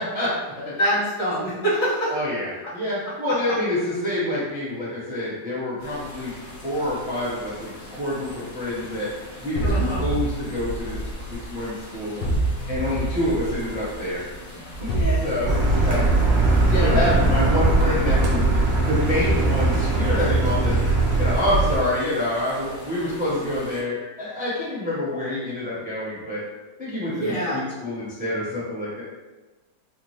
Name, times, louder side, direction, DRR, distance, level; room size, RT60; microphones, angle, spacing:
voice 1, 0.0-0.7 2.1-2.5 2.7-6.3 6.6-9.1 9.4-9.7 10.0-11.0 11.3-12.2 12.7-14.2 14.8-14.9 15.2-16.0 16.6-18.5 18.8-20.8 21.2-26.4 26.8-29.0, left 1 dB, 10° right, -9 dB, 0.6 m, -27 dB
voice 2, 0.8-2.1 3.3-3.4 9.6-10.0 14.9-15.3 15.7-15.9 16.6-16.9 27.1-27.6, equal, 50° left, -10 dB, 2.0 m, -25 dB
sound 1, 5.8-23.8, equal, 65° left, 2.1 m, -42 dB
sound 2, 9.6-11.7 12.2-14.0 14.7-19.8, right 2 dB, 90° left, 1.5 m, -27 dB
Car, 15.5-21.8, right 2 dB, 80° right, 1.6 m, -20 dB
4.8 x 2.2 x 3.1 m, 1.2 s
omnidirectional pair, 1.9 m